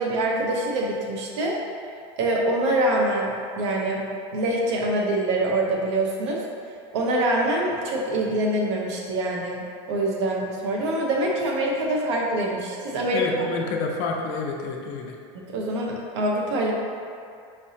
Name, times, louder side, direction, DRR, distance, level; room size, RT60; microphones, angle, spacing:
voice 1, 0.0-1.6 2.2-4.0 4.3-6.4 6.9-13.5 15.3-16.7, right 1 dB, 80° right, -1 dB, 0.8 m, -25 dB
voice 2, 13.1-15.1, left 4 dB, 60° left, 1 dB, 0.6 m, -28 dB
5.2 x 3.3 x 2.7 m, 2.3 s
supercardioid pair, 135°, 14 cm